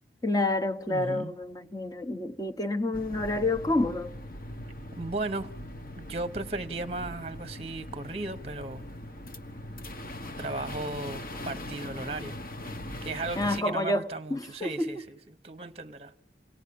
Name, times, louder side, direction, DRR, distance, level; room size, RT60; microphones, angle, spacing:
voice 1, 0.2-4.1 13.4-14.9, left 2 dB, 20° left, 0.9 m, -29 dB
voice 2, 0.9-1.3 5.0-5.5 6.0-8.8 10.4-12.4 13.0-16.1, right 2 dB, 30° right, 0.9 m, -36 dB
sound 1, 2.9-13.6, left 1 dB, 50° left, 1.3 m, -41 dB
29.5 x 19.0 x 8.5 m
head